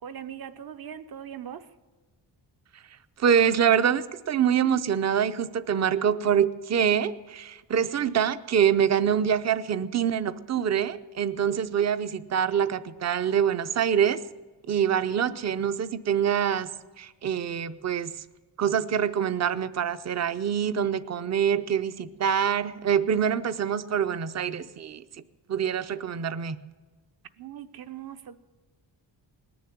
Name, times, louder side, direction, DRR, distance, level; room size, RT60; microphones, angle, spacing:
voice 1, 0.0-1.7 27.4-28.4, right 9 dB, 55° right, 10 dB, 0.9 m, -40 dB
voice 2, 3.2-14.2 14.7-16.7 17.0-18.1 18.6-25.0 25.5-26.6, right 8 dB, 40° right, 13 dB, 0.6 m, -25 dB
19.5 x 7.1 x 9.2 m, 1.3 s
wide cardioid pair, 140°, 44 cm